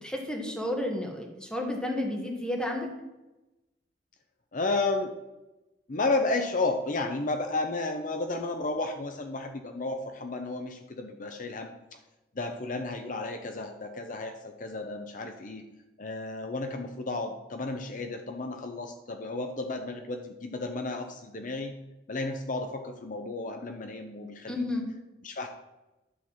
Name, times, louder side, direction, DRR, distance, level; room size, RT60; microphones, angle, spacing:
voice 1, 0.0-2.9 24.5-24.9, left 1 dB, 5° left, 1 dB, 1.5 m, -31 dB
voice 2, 4.5-5.1 5.9-11.7 12.3-15.6 16.0-21.7 22.1-24.6 25.2-25.5, left 3 dB, 45° left, 5 dB, 0.7 m, -32 dB
11.5 x 4.0 x 7.3 m, 1.0 s
head